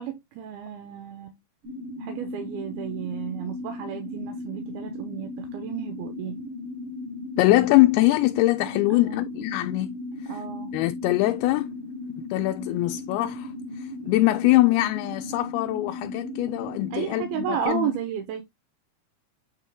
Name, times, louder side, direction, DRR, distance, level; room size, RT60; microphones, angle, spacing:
voice 1, 0.0-1.4 2.0-6.4 8.9-9.2 10.3-10.7 16.9-18.4, right 9 dB, 80° right, 2.7 m, -33 dB
sound 1, 1.6-17.7, left 2 dB, 45° right, 2.3 m, -36 dB
voice 2, 7.4-9.9 10.2-10.4 10.7-11.7 12.3-13.5 13.8-17.9, left 18 dB, 85° left, 2.4 m, -23 dB
8.9 x 3.4 x 3.6 m
omnidirectional pair, 4.6 m